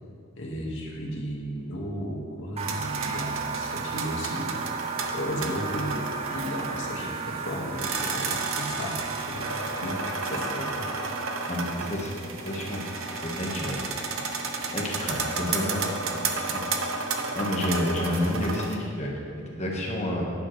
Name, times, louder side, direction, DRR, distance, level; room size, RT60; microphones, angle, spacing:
voice 1, 0.4-4.6 5.1-10.9, equal, 60° left, -3 dB, 1.8 m, -34 dB
sound 1, 2.6-12.3, right 6 dB, 30° right, 0.4 m, -36 dB
sound 2, 2.6-18.8, right 3 dB, 65° right, 0.8 m, -32 dB
voice 2, 11.5-12.1 12.4-12.8 13.2-13.8 14.7-15.8 16.3-16.6 17.3-20.2, left 1 dB, 30° left, -2 dB, 1.4 m, -29 dB
10.5 x 10.5 x 3.3 m, 2.4 s
head